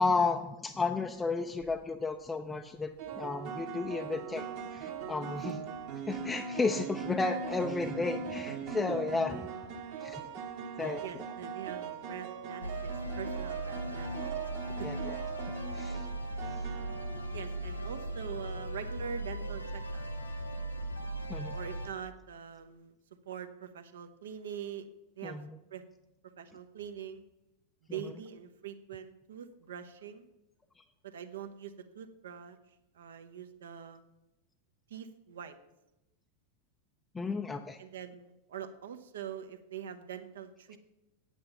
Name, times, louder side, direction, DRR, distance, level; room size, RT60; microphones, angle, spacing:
voice 1, 0.0-5.6 6.1-9.5 10.0-10.2 10.8-11.2 14.8-15.2 15.7-16.1 21.3-21.5 25.2-25.6 27.9-28.0 37.1-37.8, left 4 dB, 15° left, 5 dB, 0.5 m, -33 dB
sound 1, 1.4-1.7 3.0-17.8, right 6 dB, 45° right, 1.4 m, -40 dB
voice 2, 11.0-14.4 17.3-20.1 21.5-22.9 23.3-24.9 25.2-25.4 25.7-25.8 26.4-27.2 27.9-30.3 31.0-32.6 32.9-34.0 34.9-35.5 37.8-40.8, right 8 dB, 60° right, 9 dB, 0.9 m, -43 dB
sound 2, 12.6-21.9, right 1 dB, 90° left, 1.5 m, -38 dB
8.8 x 8.7 x 5.6 m, 0.95 s
figure-of-eight pair, 90°, 0 cm